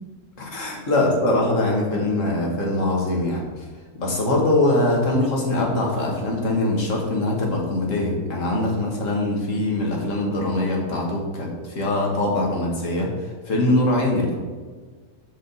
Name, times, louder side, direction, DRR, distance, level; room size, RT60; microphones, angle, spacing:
voice 1, 0.4-3.4 4.0-13.1 13.5-14.3, left 1 dB, 55° left, -1 dB, 1.8 m, -22 dB
6.8 x 5.0 x 4.0 m, 1.5 s
omnidirectional pair, 1.6 m